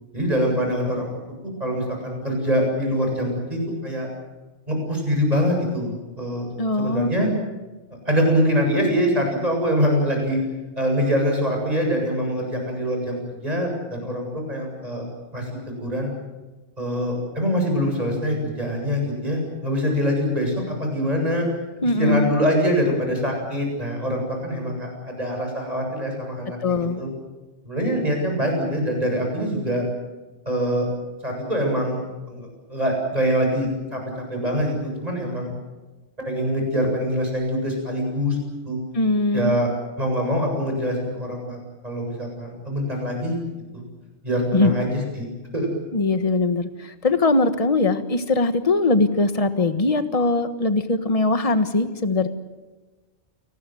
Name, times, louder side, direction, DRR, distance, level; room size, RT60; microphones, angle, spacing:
voice 1, 0.1-1.1 1.6-4.1 4.7-6.5 6.8-7.3 8.0-10.4 10.8-15.1 15.3-16.1 16.8-21.5 22.0-26.6 27.0-27.1 27.6-29.8 30.5-30.9 31.2-32.0 32.3-34.0 34.3-35.5 36.3-38.4 38.6-38.8 39.3-39.7 40.0-41.6 41.8-43.4 44.2-44.9 45.2-45.3 45.5-45.7, equal, 35° right, 1 dB, 7.9 m, -24 dB
voice 2, 6.6-7.1 21.8-22.3 26.6-27.0 38.9-39.6 44.5-44.8 45.9-52.3, left 3 dB, 30° left, 9 dB, 1.5 m, -21 dB
29.0 x 19.5 x 7.8 m, 1.2 s
omnidirectional pair, 1.2 m